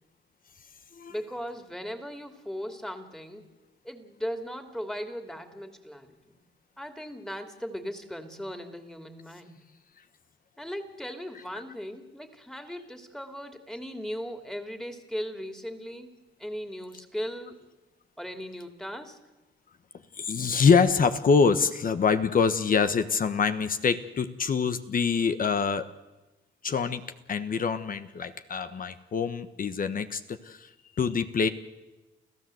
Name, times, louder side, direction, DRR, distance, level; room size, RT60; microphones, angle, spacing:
voice 1, 1.1-3.5 3.8-6.4 6.8-9.6 10.6-16.1 16.4-17.6 18.2-19.2, equal, 5° left, 6 dB, 2.9 m, -38 dB
voice 2, 20.1-25.9 26.6-27.0 27.3-30.7 31.0-31.5, left 5 dB, 45° left, 10 dB, 1.3 m, -25 dB
29.5 x 15.0 x 7.9 m, 1.1 s
cardioid pair, 90°, 20 cm